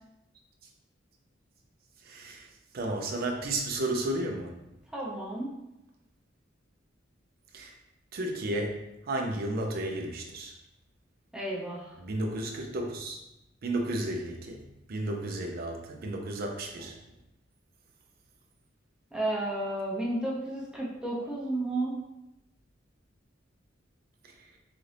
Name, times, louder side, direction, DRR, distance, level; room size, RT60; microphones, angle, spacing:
voice 1, 2.0-2.5 2.7-4.6 7.5-7.7 8.1-10.5 12.0-13.2 13.6-14.6 14.9-17.0, right 1 dB, 50° right, 1 dB, 0.5 m, -33 dB
voice 2, 4.9-5.5 11.3-11.9 19.1-22.0, right 1 dB, 5° right, -6 dB, 0.7 m, -32 dB
4.0 x 2.5 x 3.2 m, 0.88 s
head